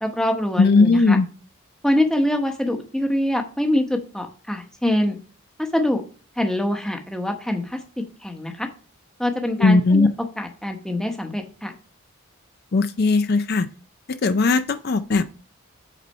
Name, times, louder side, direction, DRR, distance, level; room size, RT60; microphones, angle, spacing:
voice 1, 0.0-1.2 1.8-5.2 5.6-6.0 6.4-7.8 8.2-8.7 9.2-10.1 10.4-11.7, left 1 dB, 5° left, 4 dB, 0.9 m, -24 dB
voice 2, 0.6-1.3 9.6-10.1 12.7-13.7 14.1-15.2, left 3 dB, 45° left, 10 dB, 0.4 m, -18 dB
8.2 x 4.1 x 5.4 m, 0.37 s
head